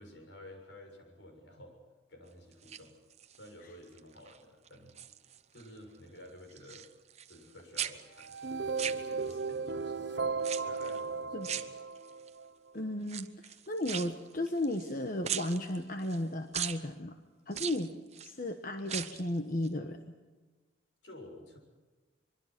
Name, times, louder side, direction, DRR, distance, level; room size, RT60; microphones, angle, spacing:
voice 1, 0.0-1.8 2.1-2.9 3.3-4.9 5.5-6.9 7.3-10.3 10.6-11.7 21.0-21.6, left 1 dB, 75° left, 3 dB, 6.7 m, -52 dB
sound 1, 2.5-3.5 4.0-4.4 4.7-5.7 5.9-7.5 7.7-9.5 10.4-11.0 11.4-12.3 13.0-15.0 15.2-16.2 16.5-16.8 17.5-18.3 18.8-19.3 19.6-19.7, right 9 dB, 35° right, 0.8 m, -40 dB
sound 2, 8.2-12.5, right 4 dB, 60° right, 1.0 m, -36 dB
voice 2, 12.7-17.2 17.5-17.9 18.2-20.0, left 1 dB, 45° left, 6 dB, 1.2 m, -34 dB
24.0 x 23.5 x 6.0 m, 1.3 s
head